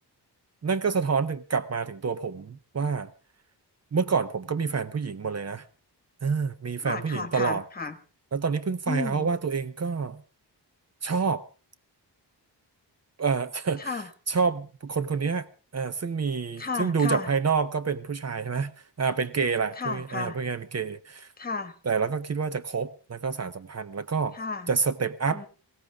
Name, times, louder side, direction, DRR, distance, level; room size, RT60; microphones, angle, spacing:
voice 1, 0.6-3.1 3.9-5.6 6.2-7.6 8.3-10.2 11.0-11.4 13.2-15.5 15.7-21.3 21.9-24.4 24.7-25.4, right 5 dB, 40° right, 13 dB, 0.7 m, -28 dB
voice 2, 6.8-8.0 8.9-9.3 13.8-14.1 16.6-17.3 19.8-20.4 21.4-21.7 24.3-24.7 25.3-25.5, left 4 dB, 20° left, 10 dB, 1.4 m, -33 dB
20.0 x 16.5 x 3.5 m, 0.35 s
wide cardioid pair, 165°, 42 cm